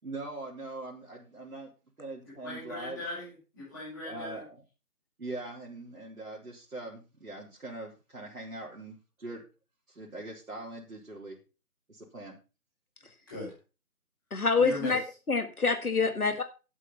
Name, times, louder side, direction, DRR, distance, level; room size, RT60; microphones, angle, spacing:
voice 1, 0.0-1.7 2.0-3.0 4.0-4.6 5.2-9.4 9.9-11.4 11.9-12.4 16.0-16.1, right 2 dB, 65° right, -5 dB, 3.9 m, -42 dB
voice 2, 2.2-4.4 13.3-13.5 14.6-15.0, left 2 dB, 15° left, -6 dB, 5.3 m, -39 dB
voice 3, 14.3-15.0 15.3-16.4, left 4 dB, 70° left, 8 dB, 1.8 m, -26 dB
11.0 x 8.5 x 5.6 m, 0.33 s
figure-of-eight pair, 175°, 46 cm